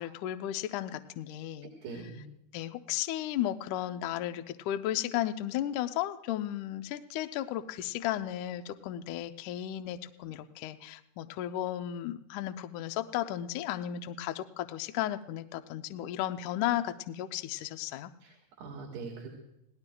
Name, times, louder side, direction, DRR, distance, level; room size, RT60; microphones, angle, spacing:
voice 1, 0.0-1.7 2.5-18.1, left 12 dB, 90° left, 8 dB, 1.7 m, -34 dB
voice 2, 1.8-2.2 18.2-19.3, right 4 dB, 90° right, -1 dB, 3.9 m, -42 dB
28.5 x 18.0 x 2.3 m, 0.87 s
omnidirectional pair, 4.5 m